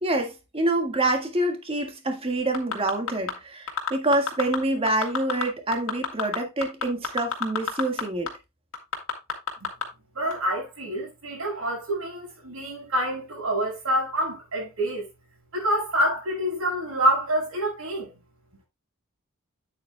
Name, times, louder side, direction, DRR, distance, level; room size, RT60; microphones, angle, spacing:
voice 1, 0.0-8.3, right 1 dB, 25° right, 1.6 m, -26 dB
sound 1, 2.5-3.3 3.7-4.6 4.9-5.4 5.7-8.0 8.3-8.4 8.7-9.8 10.3-10.4, left 6 dB, 65° left, 2.1 m, -27 dB
voice 2, 10.1-15.1 15.5-18.1, right 1 dB, 80° right, 5.8 m, -27 dB
9.0 x 8.5 x 2.2 m
head